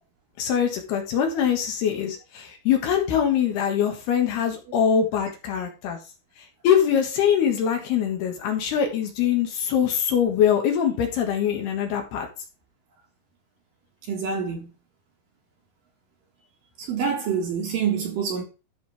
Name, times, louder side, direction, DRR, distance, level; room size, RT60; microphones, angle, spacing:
voice 1, 0.4-6.0 6.6-12.3, left 8 dB, 65° left, 3.2 m, -23 dB
voice 2, 14.1-14.7 16.9-18.4, right 6 dB, 55° right, 2.9 m, -26 dB
13.5 x 5.6 x 3.4 m
omnidirectional pair, 5.3 m